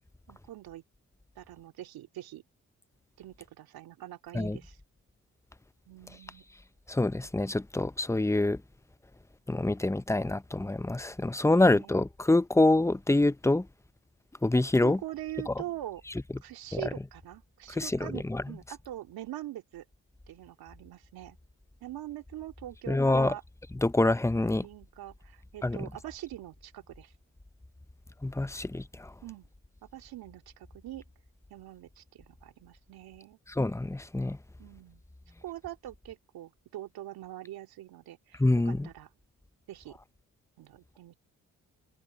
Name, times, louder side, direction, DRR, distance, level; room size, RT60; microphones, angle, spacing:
voice 1, 0.3-0.8 1.4-2.4 3.2-4.8 5.9-6.4 11.5-11.9 14.8-16.0 16.4-19.8 20.3-21.4 21.8-23.4 24.3-27.1 29.2-29.5 29.8-31.0 31.5-33.4 34.6-35.0 35.4-39.1 39.7-40.0 40.6-41.2, right 14 dB, 75° right, 2.6 m, -43 dB
voice 2, 6.9-8.6 9.5-13.7 14.4-15.0 15.5-15.6 16.7-16.8 17.7-18.4 22.9-23.3 23.7-24.6 25.6-25.8 28.2-29.1 33.6-34.4 38.4-38.9, left 2 dB, 10° left, 0.9 m, -26 dB
hypercardioid pair, 45°, 37 cm